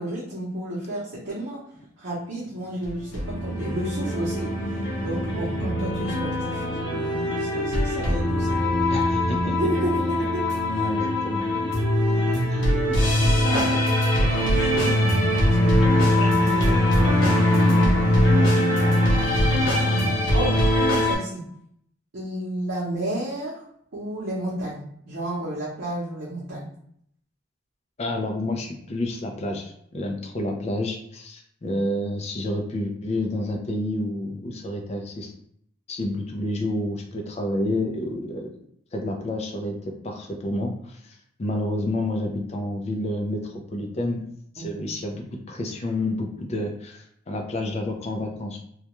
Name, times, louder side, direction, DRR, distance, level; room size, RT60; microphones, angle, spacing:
voice 1, 0.0-1.6 2.0-8.6 9.4-10.9 12.1-12.3 13.5-13.8 14.3-17.2 17.6-19.3 19.7-20.6 21.0-21.4 22.1-23.6 23.9-26.7 44.6-44.9, right 1 dB, 90° right, -8 dB, 0.7 m, -32 dB
sound 1, 2.8-21.2, left 1 dB, 85° left, 0.7 m, -21 dB
voice 2, 8.9-9.6 10.7-11.5 12.5-12.6 28.0-35.3 35.9-38.5 38.9-41.0 41.4-44.2 44.6-48.7, left 1 dB, 35° left, 2 dB, 0.4 m, -29 dB
2.3 x 2.2 x 2.9 m, 0.69 s
head